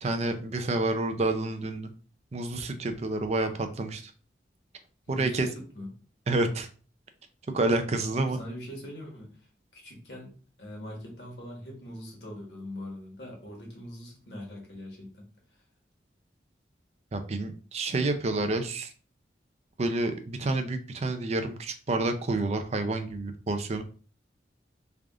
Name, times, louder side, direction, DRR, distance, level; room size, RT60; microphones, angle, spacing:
voice 1, 0.0-1.9 2.3-4.1 5.1-5.5 6.3-6.7 7.5-8.4 17.1-18.9 19.8-23.8, right 2 dB, 35° right, 7 dB, 0.5 m, -29 dB
voice 2, 5.1-5.9 8.1-9.4 9.7-15.3, left 1 dB, 65° left, -1 dB, 1.4 m, -42 dB
3.4 x 2.4 x 3.6 m, 0.39 s
head